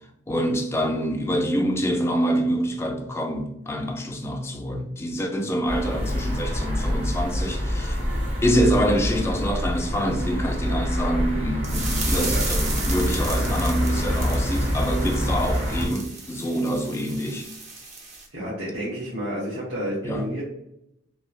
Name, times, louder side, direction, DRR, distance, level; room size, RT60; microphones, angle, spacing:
voice 1, 0.3-8.0 8.4-17.5 20.0-20.3, equal, 15° left, 0.3 m, -26 dB
sound 1, 5.7-15.9, equal, 70° right, 0.9 m, -26 dB
sound 2, 11.6-18.3, right 3 dB, 40° right, 0.5 m, -35 dB
voice 2, 12.1-12.4 18.3-20.4, equal, 90° right, 1.1 m, -30 dB
3.1 x 2.7 x 2.2 m
head